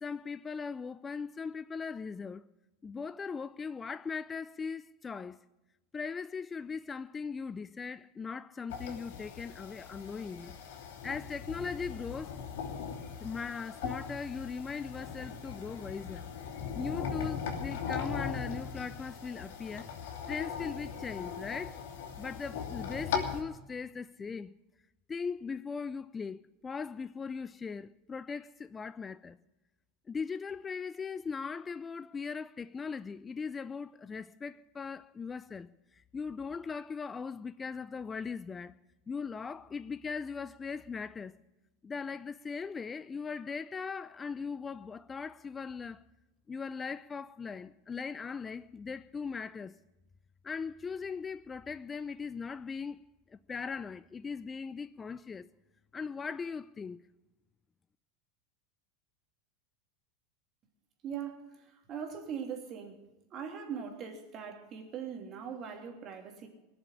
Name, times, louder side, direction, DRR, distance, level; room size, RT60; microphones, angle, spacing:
voice 1, 0.0-2.4 2.8-5.4 5.9-10.5 11.0-12.4 13.2-16.3 16.7-19.9 20.3-21.8 22.2-24.5 25.1-29.4 30.1-38.7 39.1-41.3 41.8-46.0 46.5-49.7 50.4-53.0 53.3-55.5 55.9-57.0, left 5 dB, 20° left, 0.4 m, -39 dB
sound 1, 8.7-23.4, left 7 dB, 70° left, 3.1 m, -39 dB
voice 2, 61.0-61.5 61.9-63.0 63.3-66.5, right 7 dB, 40° right, 3.0 m, -40 dB
18.5 x 7.1 x 9.7 m
hypercardioid pair, 105°, 0 cm